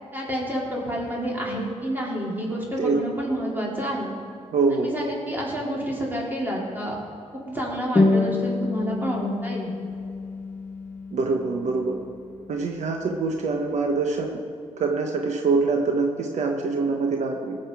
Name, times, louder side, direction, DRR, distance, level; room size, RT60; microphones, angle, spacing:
voice 1, 0.1-4.1 4.7-7.0 7.4-9.7, equal, 15° right, -4 dB, 3.8 m, -29 dB
voice 2, 4.5-4.9 11.1-12.0 12.5-14.4 14.8-17.6, right 4 dB, 70° right, 2 dB, 1.1 m, -24 dB
sound 1, 8.0-13.0, left 3 dB, 15° left, 1.8 m, -27 dB
19.0 x 7.9 x 4.9 m, 2.5 s
cardioid pair, 90°, 12 cm